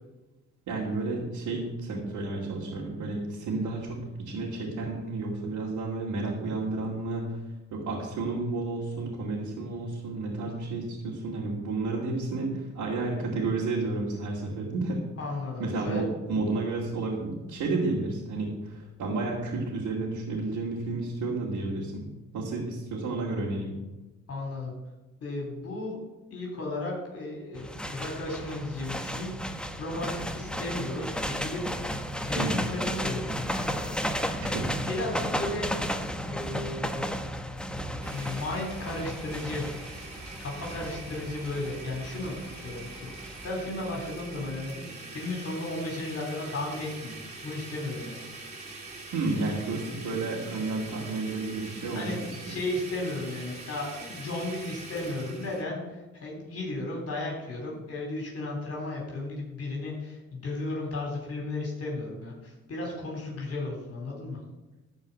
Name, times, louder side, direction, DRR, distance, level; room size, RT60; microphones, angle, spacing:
voice 1, 0.7-7.4 7.7-15.0 15.6-22.0 22.3-23.8 32.4-32.6 34.4-34.7 49.1-52.5, right 3 dB, 80° right, -4 dB, 2.5 m, -31 dB
voice 2, 15.2-16.1 24.3-24.7 25.2-26.0 26.3-31.8 32.2-35.7 36.3-37.1 38.1-39.7 40.4-47.1 47.4-48.2 52.0-52.2 52.4-64.4, left 2 dB, 50° left, -1 dB, 3.5 m, -35 dB
sound 1, 27.5-43.5, equal, 5° left, 0.9 m, -34 dB
Domestic sounds home sounds, 38.0-55.6, right 2 dB, 25° right, 3.1 m, -43 dB
12.5 x 4.7 x 8.3 m, 1.1 s
cardioid pair, 90°, 30 cm